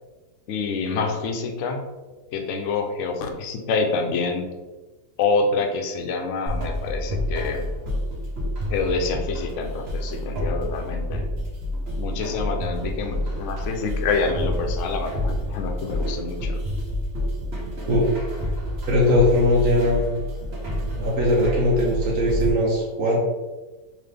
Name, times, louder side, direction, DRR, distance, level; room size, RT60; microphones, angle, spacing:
voice 1, 0.5-1.8 2.3-4.5 5.2-7.6 8.7-11.2 12.0-16.6, left 4 dB, 65° left, 4 dB, 0.8 m, -27 dB
sound 1, 6.5-22.5, left 1 dB, 45° right, 1.2 m, -28 dB
voice 2, 17.9-18.2 18.9-20.1 20.8-23.2, left 1 dB, 80° right, -4 dB, 1.3 m, -20 dB
4.0 x 3.1 x 3.3 m, 1.2 s
omnidirectional pair, 1.5 m